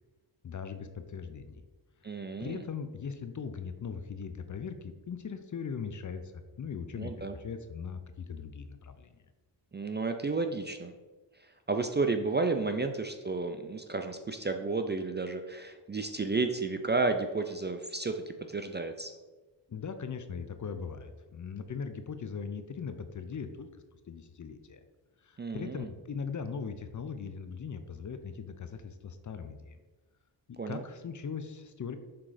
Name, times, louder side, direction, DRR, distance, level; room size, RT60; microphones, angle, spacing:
voice 1, 0.4-1.6 2.0-9.2 19.7-23.7 24.1-24.8 25.2-29.8 30.5-32.0, left 6 dB, 40° left, 9 dB, 0.6 m, -40 dB
voice 2, 2.0-2.6 7.0-7.4 9.7-10.9 11.4-19.1 25.4-25.9 30.6-30.8, right 3 dB, 25° right, 6 dB, 0.4 m, -32 dB
5.9 x 3.7 x 4.9 m, 1.2 s
cardioid pair, 75°, 46 cm